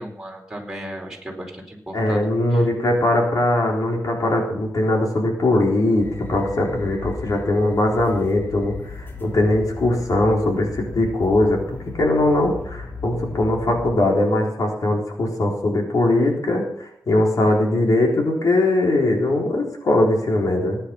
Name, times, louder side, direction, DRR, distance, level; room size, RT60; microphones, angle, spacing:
voice 1, 0.0-2.2 2.5-2.7, equal, 5° right, -1 dB, 4.4 m, -35 dB
voice 2, 1.9-20.8, left 1 dB, 65° left, 0 dB, 3.9 m, -20 dB
sound 1, 6.0-14.0, left 3 dB, 35° left, 3.1 m, -36 dB
18.5 x 10.0 x 5.9 m, 0.72 s
wide cardioid pair, 120°, 7 cm